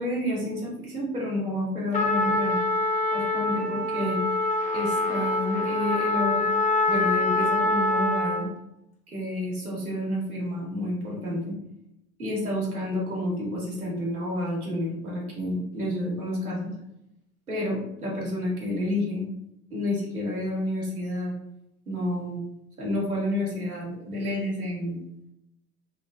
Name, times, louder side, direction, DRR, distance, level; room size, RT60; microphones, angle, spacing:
voice 1, 0.0-2.6 3.1-4.2 4.7-6.4 6.9-8.5 9.1-11.5 12.2-16.7 17.5-19.3 19.7-21.3 21.9-22.4 22.8-25.0, left 1 dB, 90° right, -5 dB, 1.1 m, -29 dB
Trumpet, 1.9-8.5, left 2 dB, 20° left, 0.5 m, -25 dB
3.1 x 2.4 x 2.3 m, 0.83 s
figure-of-eight pair, 75°, 42 cm